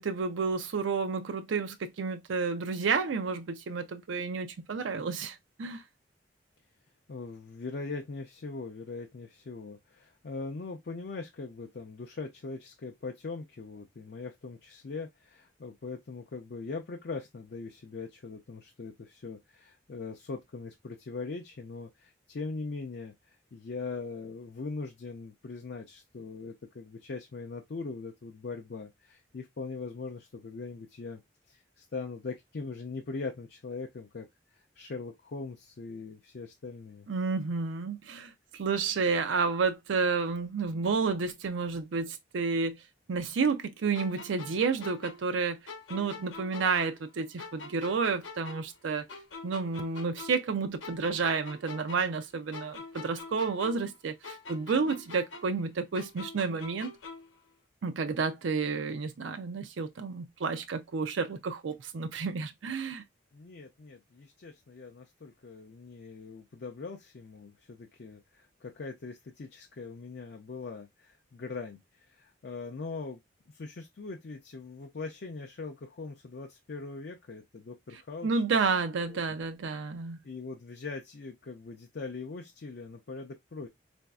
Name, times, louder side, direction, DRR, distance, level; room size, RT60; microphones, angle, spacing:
voice 1, 0.0-5.8 37.1-42.8 43.1-45.6 45.9-49.1 49.4-56.9 57.8-63.0 78.2-80.2, right 4 dB, 85° right, 0.5 m, -30 dB
voice 2, 7.1-31.2 31.5-34.3 34.5-37.1 63.3-73.2 73.5-78.4 79.1-79.2 80.2-83.7, left 4 dB, 55° left, 0.5 m, -41 dB
sound 1, 43.9-47.1 47.4-50.5 50.8-54.0 54.2-57.4, left 4 dB, 85° left, 0.8 m, -45 dB
3.9 x 2.6 x 2.2 m
head